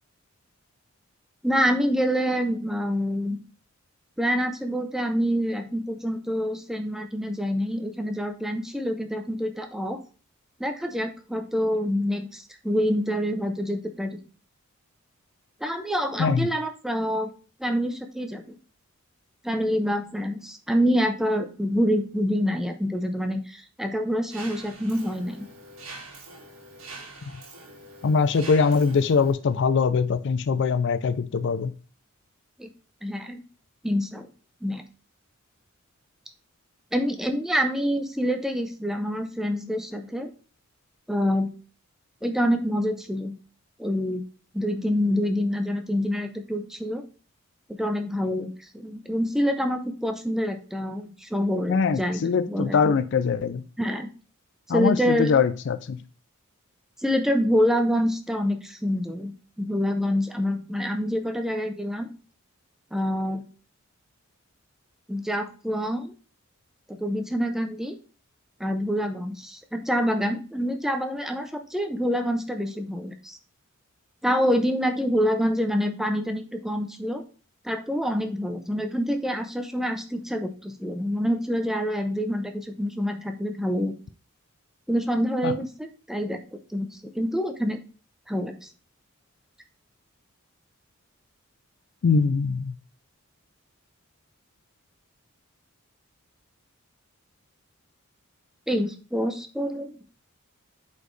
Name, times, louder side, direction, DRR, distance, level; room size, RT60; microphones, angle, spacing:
voice 1, 1.4-3.4 4.2-10.0 10.6-14.2 15.6-17.3 17.6-18.6 19.4-25.5 32.6-32.7 33.0-33.4 33.8-34.3 34.6-34.8 36.9-40.3 41.1-41.5 42.2-43.3 43.8-44.2 44.5-47.0 47.7-48.5 48.7-53.0 53.8-54.1 54.7-55.3 57.0-62.1 62.9-63.4 65.1-66.1 66.9-67.9 68.6-73.4 74.2-77.2 77.6-83.9 84.9-86.4 86.7-86.9 87.1-87.8 88.3-88.7 98.7-100.0, equal, ahead, 6 dB, 0.6 m, -26 dB
Mechanisms, 24.3-29.3, right 2 dB, 75° right, 1.6 m, -44 dB
voice 2, 28.0-31.7 51.7-53.6 54.7-56.0 85.4-85.5 92.0-92.8, left 5 dB, 55° left, 13 dB, 0.4 m, -22 dB
8.0 x 4.2 x 3.2 m, 0.38 s
head